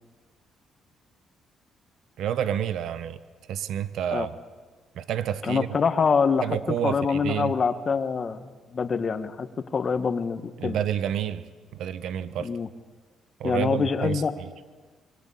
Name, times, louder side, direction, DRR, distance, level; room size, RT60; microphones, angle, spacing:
voice 1, 2.2-3.2 3.5-4.3 4.9-5.7 6.4-7.5 10.6-11.5 11.7-12.5 13.4-14.5, right 10 dB, 80° right, 13 dB, 1.2 m, -29 dB
voice 2, 5.4-6.5 6.8-10.8 12.4-12.7 13.4-14.3, left 5 dB, 45° left, 9 dB, 1.9 m, -25 dB
25.0 x 23.5 x 8.4 m, 1.4 s
cardioid pair, 90°, 0 cm